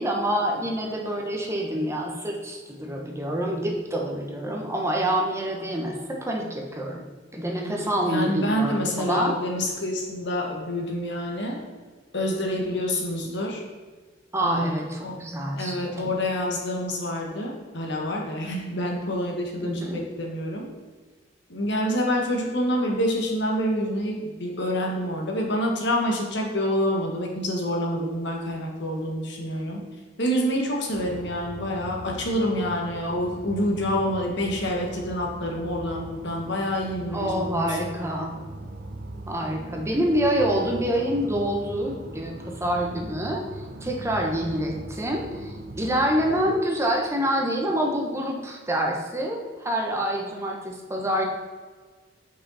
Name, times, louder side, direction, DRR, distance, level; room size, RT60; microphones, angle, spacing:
voice 1, 0.0-7.0 7.3-9.4 14.3-16.1 19.6-20.0 37.1-38.4 39.3-51.3, equal, 15° right, 0 dB, 1.1 m, -27 dB
voice 2, 7.6-11.6 12.1-13.6 14.4-15.2 15.6-20.7 21.5-29.8 30.2-38.1, equal, 65° left, 0 dB, 1.6 m, -27 dB
sound 1, 30.9-46.5, right 1 dB, 55° right, 0.9 m, -40 dB
8.5 x 5.7 x 4.1 m, 1.4 s
head